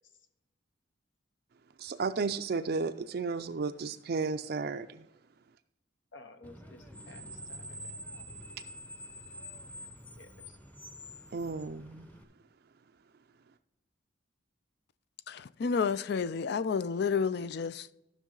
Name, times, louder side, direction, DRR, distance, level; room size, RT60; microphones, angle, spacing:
voice 1, 1.8-5.0 11.3-12.1, right 4 dB, 55° right, 0.4 m, -33 dB
voice 2, 6.1-7.9 10.2-10.6, left 2 dB, 75° left, 0.9 m, -54 dB
Screech, 6.4-12.2, equal, 10° left, 0.7 m, -47 dB
voice 3, 15.3-17.9, left 5 dB, 55° left, 0.4 m, -30 dB
13.0 x 6.4 x 3.8 m
head